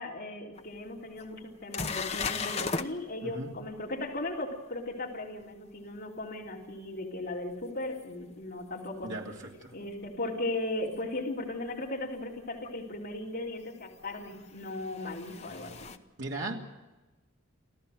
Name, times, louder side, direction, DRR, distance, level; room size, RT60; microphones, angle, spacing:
voice 1, 0.0-9.1 9.7-15.9, left 2 dB, 45° left, -3 dB, 3.4 m, -37 dB
sound 1, 0.6-0.7 1.2-1.3 1.7-2.9 8.0-8.1 10.9-11.0 12.6-12.7 14.1-16.0, left 4 dB, 30° left, 1.0 m, -35 dB
voice 2, 16.2-16.5, right 2 dB, 60° right, 0 dB, 2.9 m, -36 dB
28.0 x 14.5 x 6.5 m, 1.1 s
head